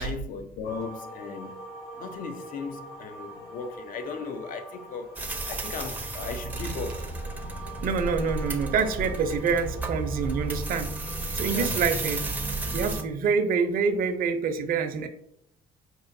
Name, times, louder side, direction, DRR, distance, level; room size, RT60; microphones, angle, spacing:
voice 1, 0.0-1.5 2.0-7.1 11.5-11.7, left 5 dB, 55° left, 0.5 m, -37 dB
sound 1, 0.6-13.0, right 1 dB, 75° left, 1.1 m, -44 dB
sound 2, 5.2-13.0, right 2 dB, 10° right, 0.5 m, -33 dB
voice 2, 7.8-10.9 11.3-12.2 12.7-15.1, right 5 dB, 55° right, 0.5 m, -26 dB
5.4 x 2.5 x 2.6 m
cardioid pair, 110°, 17 cm